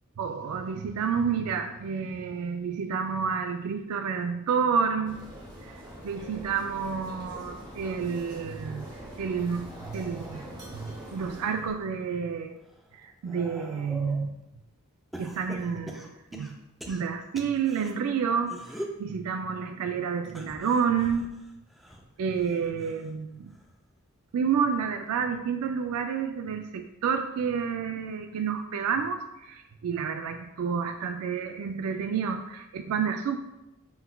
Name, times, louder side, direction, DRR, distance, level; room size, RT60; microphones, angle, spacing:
voice 1, 0.2-5.2 5.6-5.8 6.0-8.9 9.2-10.5 10.7-12.5 12.9-14.4 15.2-16.5 16.9-21.3 22.2-23.5 24.3-33.4, right 6 dB, 80° right, 7 dB, 0.3 m, -29 dB
sound 1, 5.0-11.9, right 1 dB, 20° right, 0.9 m, -44 dB
sound 2, 9.5-11.8 12.3-14.3 15.1-17.9 18.4-19.0 20.2-23.1 23.5-23.9 25.1-25.2, equal, ahead, 0.3 m, -44 dB
5.4 x 3.9 x 2.2 m, 0.91 s
head